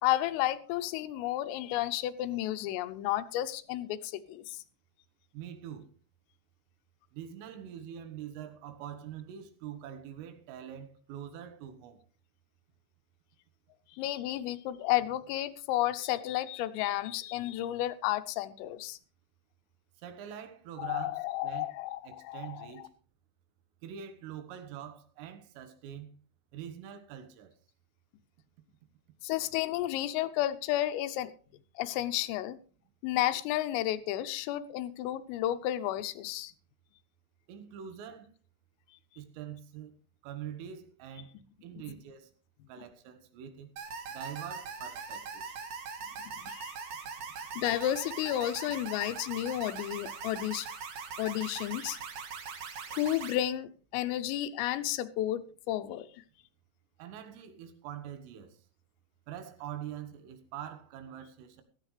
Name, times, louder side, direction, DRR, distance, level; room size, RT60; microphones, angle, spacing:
voice 1, 0.0-4.6 14.0-19.0 20.8-22.7 29.2-31.3 31.8-32.6 33.0-36.5 41.8-41.9 46.3-46.7 47.6-50.7 51.2-52.0 52.9-56.1, left 14 dB, 90° left, 3.4 m, -32 dB
voice 2, 5.3-5.9 7.1-12.0 20.0-21.7 22.1-22.9 23.8-26.1 26.5-27.5 37.5-38.3 39.2-39.9 40.2-41.3 41.6-42.3 42.7-43.7 44.1-45.6 57.0-58.6 59.3-61.6, right 9 dB, 80° right, 4.0 m, -44 dB
sound 1, 43.8-53.4, right 5 dB, 65° right, 2.3 m, -41 dB
16.0 x 13.5 x 3.2 m
omnidirectional pair, 5.8 m